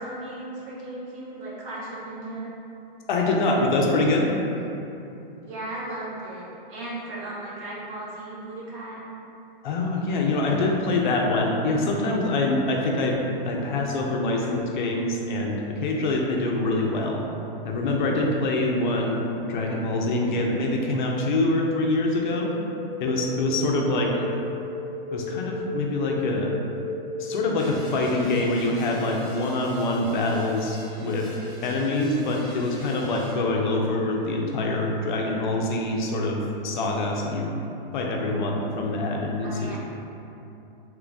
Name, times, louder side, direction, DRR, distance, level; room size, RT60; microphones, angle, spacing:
voice 1, 0.0-2.5 5.4-9.0 39.4-39.8, right 1 dB, 30° right, -7 dB, 0.7 m, -36 dB
voice 2, 3.1-4.3 9.6-13.2 13.5-17.2 17.6-22.5 23.0-24.2 25.1-26.5 27.2-31.3 31.6-37.5 37.9-39.8, left 2 dB, 55° left, -1 dB, 0.5 m, -25 dB
sound 1, 20.3-28.6, left 2 dB, 35° left, 0.9 m, -35 dB
sound 2, 27.5-33.3, left 1 dB, 5° left, 1.0 m, -47 dB
3.0 x 2.5 x 3.4 m, 2.9 s
hypercardioid pair, 155°, 29 cm